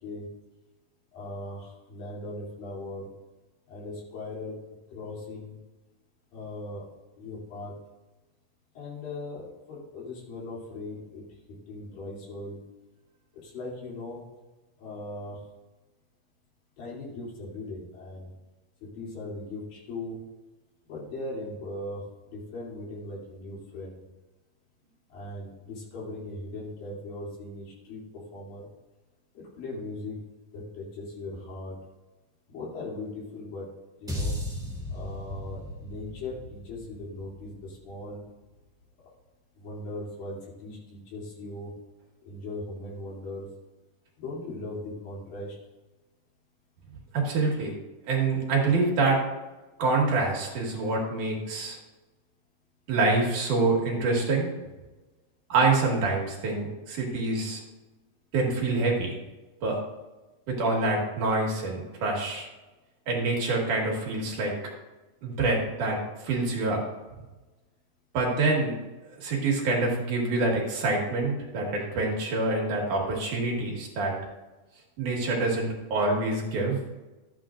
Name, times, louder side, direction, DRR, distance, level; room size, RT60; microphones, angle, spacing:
voice 1, 1.1-3.1 3.7-4.6 4.9-5.6 6.3-6.9 7.2-7.7 8.7-11.2 11.7-12.6 13.3-14.2 14.8-15.4 16.8-18.3 18.8-20.2 20.9-24.0 25.1-28.7 29.6-30.2 30.5-31.8 32.5-33.7 34.0-34.3 34.9-38.2 39.6-41.7 42.2-43.5 44.2-45.6, left 2 dB, 75° left, -5 dB, 4.7 m, -39 dB
sound 1, 34.1-38.4, left 1 dB, ahead, 1.0 m, -36 dB
voice 2, 47.1-47.7 48.1-49.2 49.8-51.8 52.9-54.5 55.5-57.6 58.3-59.2 59.6-59.8 60.5-62.5 63.1-64.5 65.2-66.0 66.2-66.8 68.1-68.8 69.2-74.2 75.0-76.8, right 3 dB, 60° right, -2 dB, 3.0 m, -26 dB
13.0 x 9.2 x 2.5 m, 1.1 s
omnidirectional pair, 4.1 m